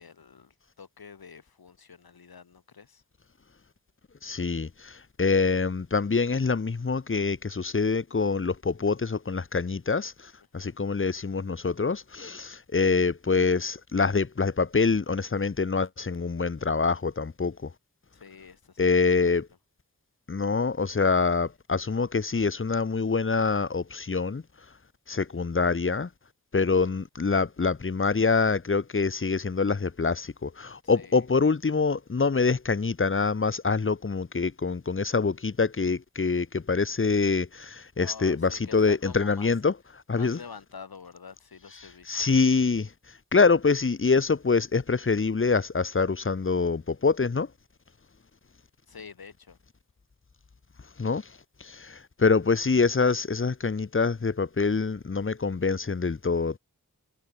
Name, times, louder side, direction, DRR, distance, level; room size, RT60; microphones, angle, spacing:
voice 1, 0.0-3.0 10.6-10.8 18.1-19.3 30.8-31.2 38.0-39.5 40.1-42.3 48.9-49.6, left 6 dB, 85° left, 2.7 m, -47 dB
voice 2, 4.2-10.1 10.5-17.7 18.8-19.5 20.3-24.4 25.1-26.1 26.5-39.7 40.1-40.4 42.1-42.9 43.3-47.5 51.0-51.2 51.6-56.6, left 4 dB, 35° left, 1.0 m, -25 dB
wide cardioid pair, 60°, 36 cm